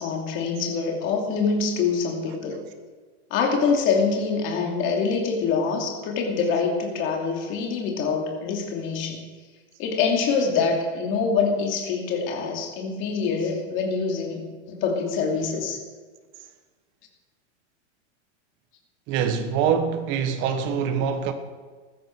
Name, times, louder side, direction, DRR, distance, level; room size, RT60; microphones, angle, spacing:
voice 1, 0.0-2.6 3.3-9.2 9.8-15.8, left 5 dB, 35° left, 2.7 m, -25 dB
voice 2, 19.1-21.3, right 7 dB, 35° right, 1.3 m, -24 dB
15.5 x 13.0 x 4.7 m
supercardioid pair, 165°, 36 cm